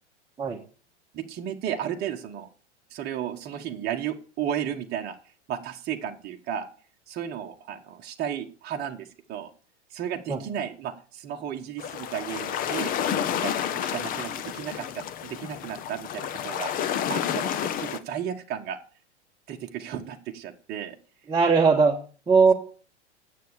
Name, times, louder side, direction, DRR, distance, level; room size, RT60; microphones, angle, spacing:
voice 1, 1.1-2.5 2.9-5.2 5.5-6.7 7.1-9.5 9.9-13.0 13.3-16.7 17.1-18.8 19.5-21.0 21.8-21.9, right 9 dB, 30° right, 2 dB, 1.2 m, -34 dB
sound 1, 11.8-18.0, left 9 dB, 25° left, 0.7 m, -30 dB
voice 2, 21.3-22.0 22.3-22.5, right 5 dB, 10° right, -2 dB, 1.4 m, -19 dB
9.3 x 7.7 x 6.7 m, 0.39 s
figure-of-eight pair, 95°, 35 cm